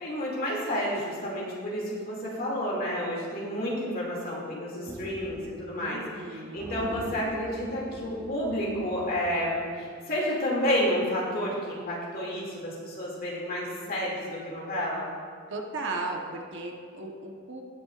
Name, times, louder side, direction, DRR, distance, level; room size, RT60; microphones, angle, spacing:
voice 1, 0.0-6.0 6.3-15.1, equal, 45° left, -4 dB, 2.4 m, -30 dB
sound 1, 4.9-5.9 6.1-6.3 6.6-9.9, equal, 15° right, 1.1 m, -42 dB
voice 2, 5.8-6.6 15.5-17.6, right 3 dB, 55° right, 1 dB, 1.1 m, -36 dB
18.5 x 7.0 x 2.5 m, 2.2 s
head